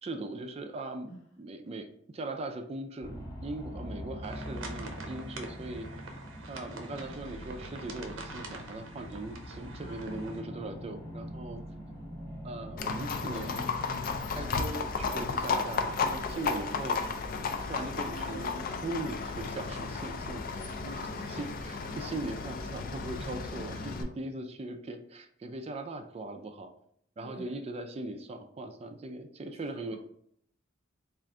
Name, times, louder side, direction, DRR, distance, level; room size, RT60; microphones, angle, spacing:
voice 1, 0.0-1.1 1.4-1.9 2.1-11.6 12.4-13.7 14.3-17.0 17.6-26.7 27.2-30.0, right 2 dB, 30° right, 5 dB, 0.3 m, -40 dB
sound 1, 3.0-14.2, equal, 20° left, 0.8 m, -43 dB
sound 2, 4.2-10.4, right 3 dB, 70° right, 0.7 m, -46 dB
voice 2, 9.8-10.3 11.9-12.2 20.8-21.5 27.2-27.5 29.5-30.0, right 1 dB, 90° left, -1 dB, 1.3 m, -49 dB
Livestock farm animals working animals, 12.8-24.0, left 4 dB, 45° left, 0.4 m, -34 dB
3.6 x 2.5 x 3.3 m, 0.68 s
head